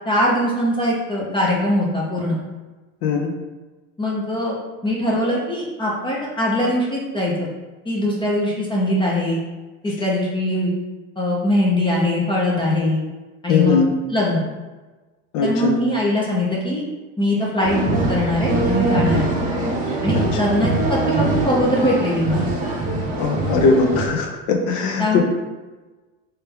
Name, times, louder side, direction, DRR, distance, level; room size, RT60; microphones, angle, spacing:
voice 1, 0.1-2.4 4.0-4.6 4.8-7.5 7.9-9.4 9.8-10.7 11.2-13.0 13.4-13.8 14.1-14.4 15.4-16.8 17.2-19.3 20.0-22.4 25.0-25.2, left 1 dB, 15° left, -4 dB, 0.6 m, -21 dB
voice 2, 3.0-3.3 13.5-13.9 15.3-15.8 23.2-25.2, left 4 dB, 60° left, 3 dB, 0.7 m, -19 dB
sound 1, 17.6-24.1, right 2 dB, 20° right, 0.9 m, -22 dB
3.2 x 3.1 x 3.4 m, 1.2 s
supercardioid pair, 125°, 37 cm